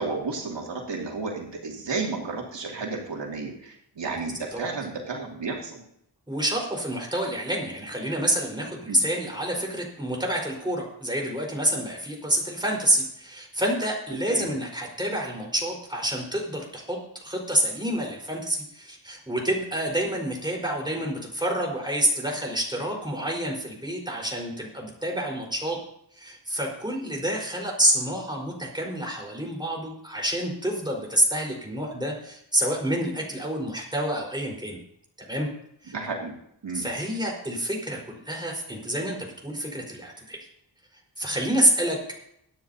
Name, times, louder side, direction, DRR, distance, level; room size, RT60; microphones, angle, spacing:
voice 1, 0.0-5.8 8.9-9.0 14.3-14.5 35.9-36.3 36.6-36.8, right 4 dB, 85° right, -1 dB, 2.5 m, -32 dB
voice 2, 6.3-25.8 26.2-34.8 35.3-35.5 35.8-35.9 36.7-40.5 41.2-42.0, right 1 dB, 10° right, -1 dB, 4.3 m, -28 dB
23.0 x 9.8 x 2.8 m, 0.72 s
wide cardioid pair, 115°, 42 cm